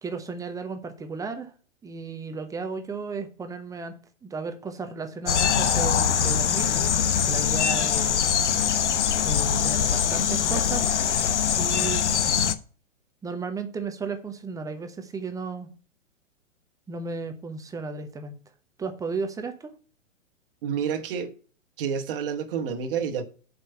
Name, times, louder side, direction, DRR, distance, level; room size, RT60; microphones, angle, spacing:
voice 1, 0.0-1.5 1.8-3.9 4.2-6.7 7.3-8.4 9.2-10.9 11.6-12.1 13.2-15.7 16.9-18.4 18.8-19.7, right 4 dB, 10° right, 0.9 m, -34 dB
sound 1, 5.3-12.5, left 8 dB, 60° left, 1.0 m, -23 dB
voice 2, 20.6-21.3 21.8-23.2, right 7 dB, 45° right, 1.5 m, -29 dB
7.7 x 5.3 x 6.7 m
figure-of-eight pair, 120°, 39 cm